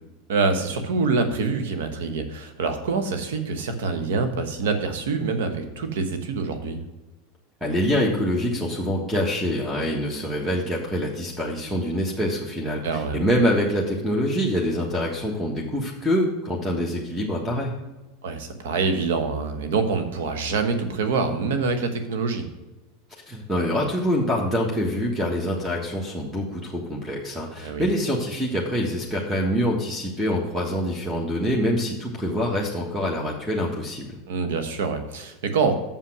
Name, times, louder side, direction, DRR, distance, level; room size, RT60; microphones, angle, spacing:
voice 1, 0.3-6.8 12.8-13.2 18.2-22.5 27.6-27.9 34.3-35.7, right 4 dB, 80° right, 9 dB, 1.1 m, -25 dB
voice 2, 7.6-17.7 23.3-34.2, equal, 5° right, -1 dB, 1.3 m, -25 dB
6.9 x 5.7 x 6.0 m, 1.1 s
hypercardioid pair, 105°, 0 cm